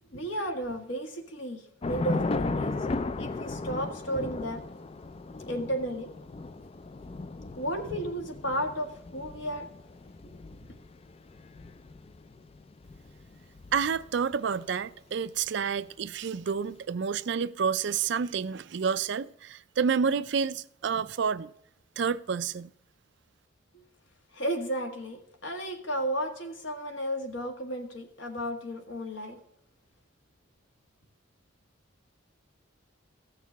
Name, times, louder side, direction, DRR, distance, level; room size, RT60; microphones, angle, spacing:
voice 1, 0.1-2.8 3.2-4.6 5.5-6.1 7.6-9.7 10.2-10.3 23.7-23.8 24.3-29.4, equal, 65° left, 1.7 m, -33 dB
Thunder / Rain, 1.8-14.3, left 3 dB, 30° left, 0.3 m, -36 dB
voice 2, 13.7-21.5 22.0-22.7, right 6 dB, 55° right, 0.4 m, -29 dB
15.0 x 6.5 x 3.5 m
head